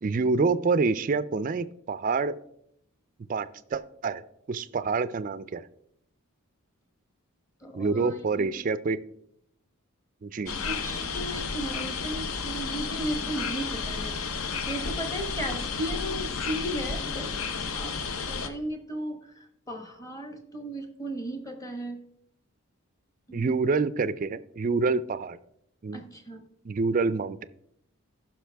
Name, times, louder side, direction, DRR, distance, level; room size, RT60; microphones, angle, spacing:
voice 1, 0.0-2.4 3.3-4.2 4.5-5.6 7.7-9.0 10.2-10.5 23.3-25.4 25.8-26.0 26.6-27.4, right 4 dB, 35° right, 15 dB, 0.3 m, -27 dB
voice 2, 7.6-8.5 10.6-14.1 14.7-17.3 17.7-22.0 23.3-23.6 25.9-26.4, right 1 dB, 15° left, 5 dB, 1.0 m, -36 dB
sound 1, 10.5-18.5, left 5 dB, 70° left, 0.7 m, -32 dB
15.0 x 5.9 x 3.4 m, 0.74 s
head